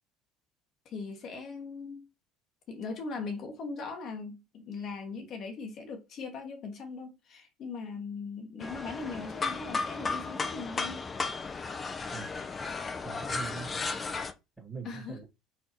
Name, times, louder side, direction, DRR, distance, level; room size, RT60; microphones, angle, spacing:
voice 1, 0.8-2.1 2.7-11.0 14.8-15.2, left 4 dB, 45° left, 1.0 m, -40 dB
sound 1, 8.6-14.3, left 4 dB, 25° left, 0.6 m, -34 dB
voice 2, 12.1-12.4 13.0-13.7 14.6-15.2, right 5 dB, 15° right, 1.8 m, -42 dB
4.2 x 3.7 x 3.0 m
figure-of-eight pair, 60°, 0 cm